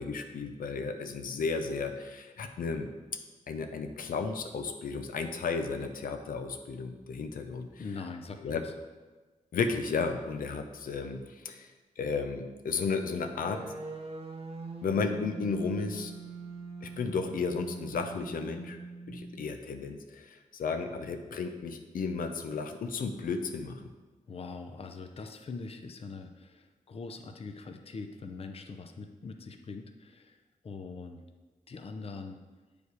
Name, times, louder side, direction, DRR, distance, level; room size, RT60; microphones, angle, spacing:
voice 1, 0.0-2.9 3.5-7.7 8.4-8.6 9.5-13.6 14.8-16.1 16.8-18.8 19.1-23.8, left 4 dB, 90° left, 6 dB, 0.7 m, -33 dB
voice 2, 7.8-8.7 17.3-17.4 24.3-30.4 30.6-31.2 31.7-32.4, left 4 dB, 45° left, 6 dB, 0.6 m, -42 dB
sound 1, 13.5-19.5, right 4 dB, 45° right, 0.8 m, -43 dB
8.3 x 5.1 x 4.7 m, 1.3 s
wide cardioid pair, 115°, 14 cm